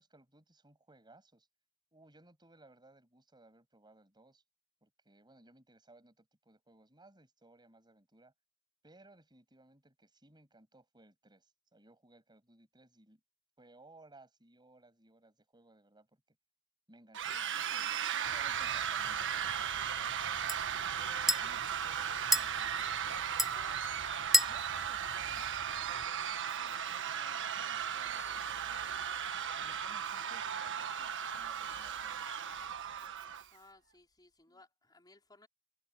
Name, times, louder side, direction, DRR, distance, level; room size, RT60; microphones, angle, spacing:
voice 1, 0.0-1.5 1.9-4.4 4.8-8.3 8.8-13.2 13.6-16.2 16.9-17.8 18.1-20.4 21.0-22.8 23.0-24.0 24.4-29.0 29.5-32.3 34.5-34.6, right 2 dB, 20° right, 7.2 m, -62 dB
sound 1, 17.1-33.4, right 8 dB, 60° right, 1.5 m, -36 dB
sound 2, 18.2-26.1, equal, ahead, 0.6 m, -37 dB
Engine / Mechanisms, 21.0-33.9, right 6 dB, 90° right, 6.5 m, -62 dB
voice 2, 33.5-35.5, left 2 dB, 20° left, 5.1 m, -61 dB
head